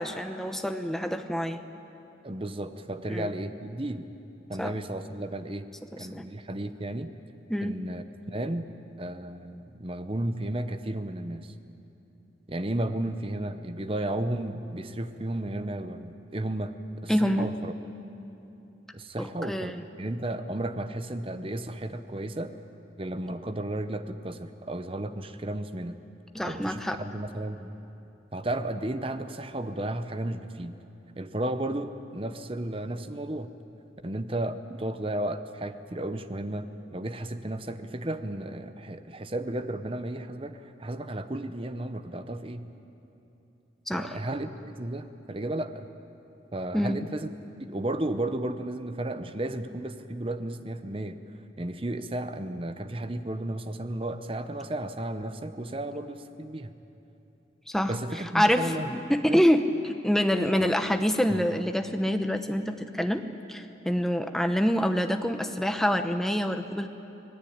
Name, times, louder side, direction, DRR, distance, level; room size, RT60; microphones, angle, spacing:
voice 1, 0.0-1.6 3.1-3.3 4.6-4.7 5.9-6.3 7.5-7.8 17.1-17.5 19.2-19.8 26.3-27.0 43.9-44.2 46.7-47.0 57.7-57.9 58.3-66.9, equal, ahead, 6 dB, 0.9 m, -26 dB
voice 2, 2.2-4.1 4.5-5.7 6.0-7.1 7.6-8.7 9.0-11.5 12.5-16.7 17.0-17.7 18.9-22.5 23.0-26.0 26.4-27.7 28.3-30.8 31.1-33.5 34.0-42.7 43.9-45.9 46.5-47.3 47.6-56.7 57.9-58.9 59.3-59.4 60.4-60.8 61.3-61.4, right 1 dB, 30° right, 10 dB, 0.9 m, -33 dB
25.5 x 18.0 x 8.8 m, 2.9 s
head